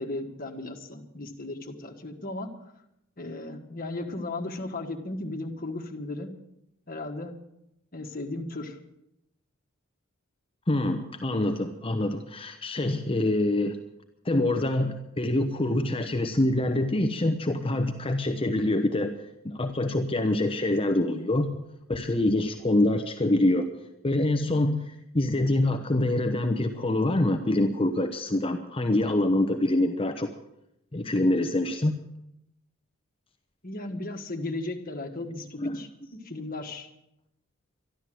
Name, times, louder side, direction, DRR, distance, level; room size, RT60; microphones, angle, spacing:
voice 1, 0.0-2.5 3.2-6.3 6.9-7.3 7.9-8.8 33.6-36.9, left 2 dB, 40° left, 4 dB, 1.6 m, -36 dB
voice 2, 10.7-13.8 14.2-19.1 19.4-23.7 24.0-30.3 30.9-32.0 35.6-35.8, left 1 dB, 25° left, 6 dB, 0.8 m, -25 dB
13.0 x 11.5 x 7.6 m, 0.82 s
head